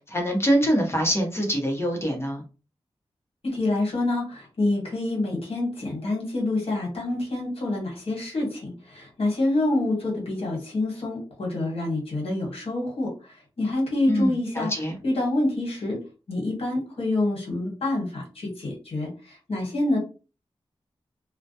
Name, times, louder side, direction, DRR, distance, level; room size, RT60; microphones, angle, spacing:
voice 1, 0.1-2.4 14.1-14.3 14.6-14.9, equal, 25° left, 1 dB, 0.7 m, -24 dB
voice 2, 3.4-14.7 15.0-16.0 16.3-20.0, left 2 dB, 65° left, -1 dB, 1.1 m, -27 dB
2.2 x 2.1 x 2.7 m, 0.34 s
wide cardioid pair, 115°, 10 cm